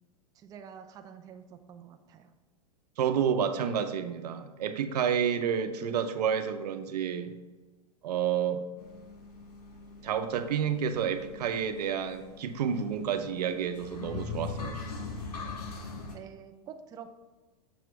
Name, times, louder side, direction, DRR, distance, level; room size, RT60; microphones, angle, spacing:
voice 1, 0.4-2.2 16.1-17.1, right 7 dB, 20° right, 6 dB, 0.4 m, -47 dB
voice 2, 3.0-7.3 8.0-8.6 10.0-14.8, right 8 dB, 85° right, 8 dB, 0.7 m, -30 dB
sound 1, 8.8-16.2, left 4 dB, 85° left, 1.7 m, -42 dB
7.0 x 3.0 x 4.6 m, 1.2 s
supercardioid pair, 135°, 20 cm